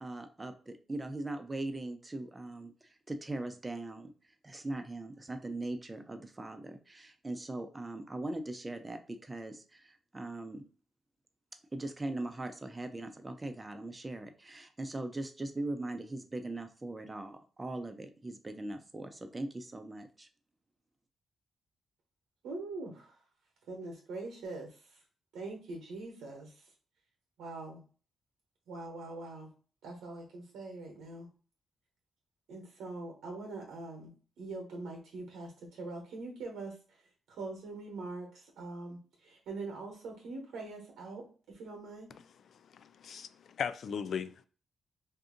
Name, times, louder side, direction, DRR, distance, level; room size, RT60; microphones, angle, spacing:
voice 1, 0.0-4.1 4.4-10.6 11.7-20.3, right 2 dB, 25° right, 0.6 m, -40 dB
voice 2, 22.4-23.2 23.7-25.0 25.3-26.7 27.4-27.8 28.7-29.5 29.8-31.3 32.5-36.8 37.3-42.1, right 3 dB, 85° right, 0.9 m, -43 dB
voice 3, 42.6-44.4, left 7 dB, 70° left, 0.3 m, -38 dB
2.7 x 2.4 x 3.7 m
cardioid pair, 65°, 0 cm